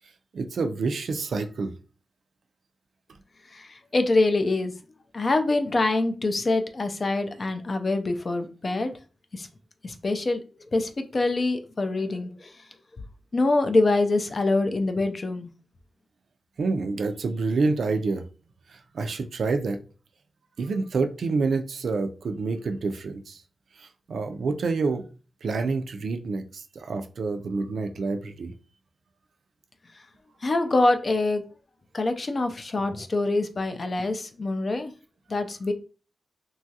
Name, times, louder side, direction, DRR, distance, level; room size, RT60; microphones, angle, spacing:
voice 1, 0.3-1.7 16.6-18.2 18.7-19.8 20.6-23.4 23.8-25.0 25.4-28.5, right 4 dB, 75° right, 7 dB, 0.4 m, -28 dB
voice 2, 3.5-4.7 5.1-8.9 9.3-9.5 9.8-10.4 10.7-12.5 13.3-15.5 30.4-31.4 31.9-34.9 35.3-35.7, left 2 dB, 35° left, 7 dB, 0.3 m, -25 dB
2.9 x 2.3 x 2.7 m, 0.35 s
wide cardioid pair, 155°, 0 cm